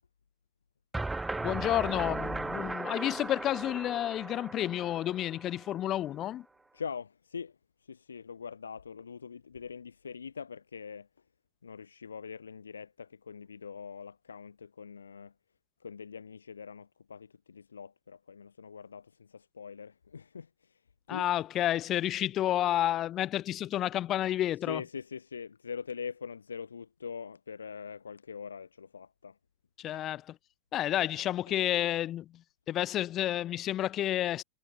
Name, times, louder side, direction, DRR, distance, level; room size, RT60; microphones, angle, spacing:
sound 1, 0.9-5.9, right 2 dB, 10° right, 0.8 m, -37 dB
voice 1, 1.4-6.4 21.1-24.8 29.8-30.2 30.7-32.4 32.7-34.4, left 12 dB, 30° left, 1.0 m, -30 dB
voice 2, 6.7-11.1 11.6-15.3 15.8-20.8 21.1-21.3 24.7-29.4 29.9-30.0, left 6 dB, 70° left, 4.1 m, -43 dB
figure-of-eight pair, 90°, 0 cm